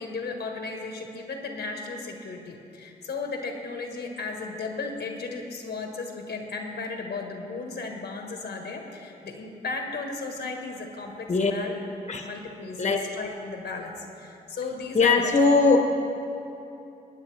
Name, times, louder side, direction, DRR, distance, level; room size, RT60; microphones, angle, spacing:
voice 1, 0.0-11.7 12.2-15.3, left 3 dB, 65° left, 3 dB, 1.5 m, -35 dB
voice 2, 14.9-15.8, left 4 dB, 40° left, 3 dB, 1.2 m, -20 dB
20.0 x 9.0 x 3.4 m, 2.9 s
supercardioid pair, 50°, 18 cm